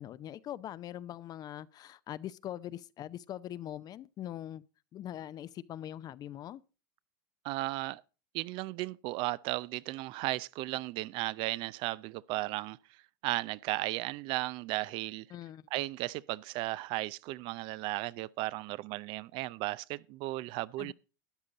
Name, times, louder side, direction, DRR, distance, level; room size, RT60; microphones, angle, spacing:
voice 1, 0.0-4.6 4.9-6.6 15.3-15.7 20.8-20.9, left 11 dB, 40° left, 0.6 m, -42 dB
voice 2, 7.4-8.0 8.3-12.8 13.2-15.3 15.7-20.9, right 19 dB, 55° right, 0.5 m, -35 dB
13.0 x 9.6 x 3.9 m
hypercardioid pair, 95°, 11 cm